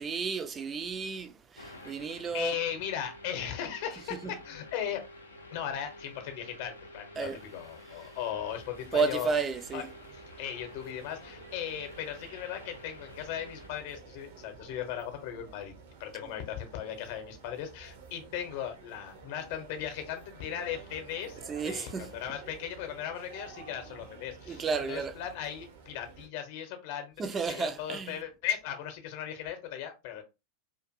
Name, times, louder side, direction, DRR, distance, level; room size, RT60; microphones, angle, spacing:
voice 1, 0.0-2.5 4.2-4.3 7.2-7.4 8.9-9.9 21.5-22.1 24.5-25.1 27.2-28.2, right 5 dB, 20° right, 0.4 m, -32 dB
sound 1, 1.6-13.7, left 1 dB, 80° left, 0.5 m, -50 dB
voice 2, 2.3-5.0 5.5-9.3 9.7-9.8 10.1-15.7 16.0-21.4 21.6-30.2, left 9 dB, 50° left, 0.7 m, -37 dB
sound 2, 8.3-26.3, right 5 dB, 60° right, 0.7 m, -51 dB
2.5 x 2.5 x 2.5 m
figure-of-eight pair, 90°, 0 cm